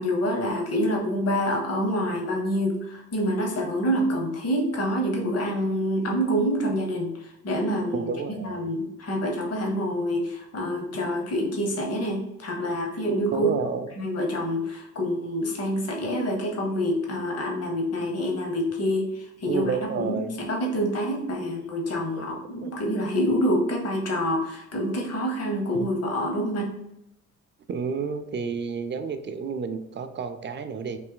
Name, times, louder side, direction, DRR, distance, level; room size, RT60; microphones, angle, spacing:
voice 1, 0.0-8.1 8.4-13.5 14.0-26.8, equal, 55° left, 1 dB, 1.1 m, -27 dB
voice 2, 7.9-8.7 13.3-13.9 19.5-20.3 22.2-22.3 22.6-22.7 25.7-25.9 27.7-31.0, right 5 dB, 40° right, 8 dB, 0.4 m, -30 dB
3.3 x 2.6 x 3.8 m, 0.82 s
cardioid pair, 90°, 30 cm